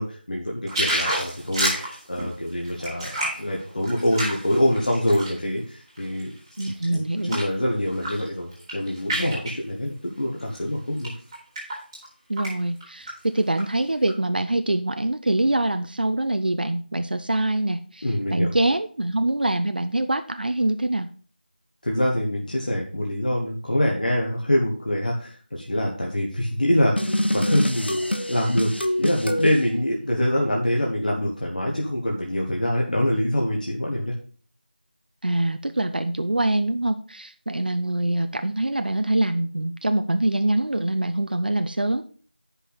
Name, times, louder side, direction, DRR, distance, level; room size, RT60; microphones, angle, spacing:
voice 1, 0.0-6.3 6.9-11.1 18.0-18.5 21.8-28.0 28.3-28.7 29.0-34.1, left 1 dB, 55° left, -2 dB, 1.5 m, -25 dB
sound 1, 0.7-5.4 5.9-7.6 7.9-8.3 8.5-9.6 10.4-10.6 11.0-12.1 12.4-12.5 12.8-13.6 14.1-14.2, right 1 dB, 10° right, 2.3 m, -29 dB
voice 2, 6.6-7.4 12.3-18.1 18.3-21.1 35.2-42.0, right 1 dB, 60° right, 8 dB, 0.6 m, -24 dB
sound 2, 27.0-29.6, equal, 90° left, 1.3 m, -25 dB
9.6 x 5.7 x 4.1 m, 0.41 s
figure-of-eight pair, 170°, 6 cm